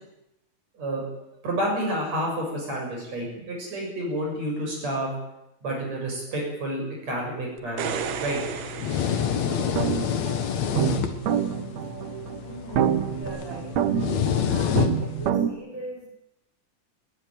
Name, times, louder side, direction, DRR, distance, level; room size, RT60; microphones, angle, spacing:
voice 1, 1.4-5.2 5.6-8.4, right 1 dB, 45° right, -1 dB, 8.0 m, -29 dB
sound 1, 7.6-10.1 13.2-13.3, right 7 dB, 85° right, 3.5 m, -34 dB
sound 2, 7.8-15.3, left 8 dB, 55° left, 2.4 m, -28 dB
sound 3, 9.5-15.5, right 9 dB, 65° right, 2.0 m, -27 dB
voice 2, 12.4-14.2 14.5-16.1, equal, 5° left, -1 dB, 6.2 m, -41 dB
21.5 x 16.0 x 9.3 m, 0.86 s
omnidirectional pair, 4.3 m